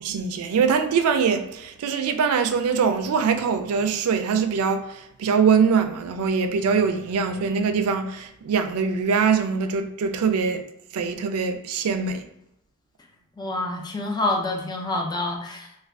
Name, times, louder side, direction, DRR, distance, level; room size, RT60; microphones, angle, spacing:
voice 1, 0.0-10.6 10.9-12.3, right 6 dB, 85° right, 0.3 m, -23 dB
voice 2, 13.4-15.7, left 2 dB, 20° left, 0.4 m, -27 dB
2.4 x 2.3 x 3.3 m
head